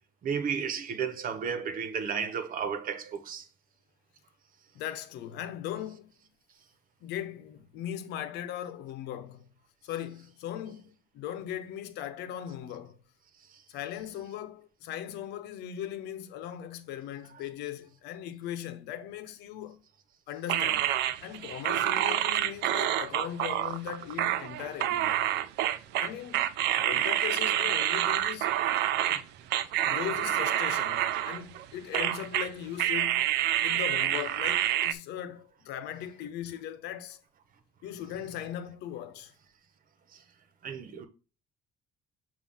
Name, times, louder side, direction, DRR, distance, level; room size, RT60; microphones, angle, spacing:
voice 1, 0.2-3.5 13.5-13.6 40.1-40.2 40.6-41.1, right 6 dB, 55° right, 1.2 m, -33 dB
voice 2, 4.7-6.1 7.0-9.5 9.8-10.9 11.1-13.0 13.7-19.8 20.3-20.9 21.2-25.2 26.0-26.5 26.8-28.5 29.1-29.3 29.8-33.3 33.6-37.2 37.8-39.3, left 11 dB, 85° left, 0.9 m, -39 dB
sound 1, 20.5-29.2 29.5-31.7 31.9-32.5 32.8-34.9, right 12 dB, 85° right, 0.6 m, -28 dB
7.4 x 2.7 x 5.5 m
cardioid pair, 110°, 17 cm